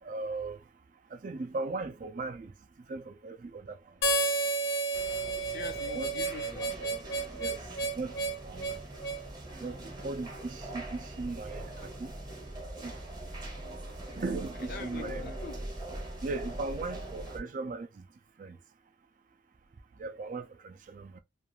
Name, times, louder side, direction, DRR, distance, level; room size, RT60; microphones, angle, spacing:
voice 1, 0.0-0.6 1.1-2.5 2.9-3.9 5.9-6.1 6.8-7.0 7.4-7.6 8.0-8.8 9.6-12.1 12.8-12.9 14.2-15.2 16.2-18.1 18.4-18.6 20.0-21.2, right 3 dB, 40° right, 0.3 m, -38 dB
Harmonica, 4.0-9.2, right 3 dB, 85° left, 0.8 m, -31 dB
sound 1, 4.9-17.4, right 1 dB, 20° right, 0.8 m, -42 dB
voice 2, 5.4-6.7 14.7-15.7, left 5 dB, 50° left, 0.4 m, -44 dB
2.4 x 2.3 x 2.9 m
head